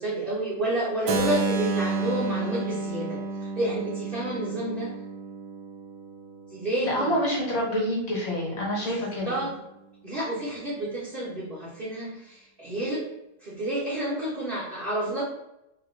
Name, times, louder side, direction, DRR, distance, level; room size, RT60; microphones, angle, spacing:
voice 1, 0.0-3.2 3.5-4.9 6.5-7.1 9.2-9.6 10.0-13.1 13.4-15.2, right 1 dB, 35° right, -8 dB, 1.2 m, -30 dB
Keyboard (musical), 1.1-6.9, right 3 dB, 75° right, 1.3 m, -31 dB
voice 2, 6.8-9.4, equal, 35° left, -4 dB, 1.6 m, -27 dB
4.8 x 2.8 x 3.8 m, 0.89 s
omnidirectional pair, 2.0 m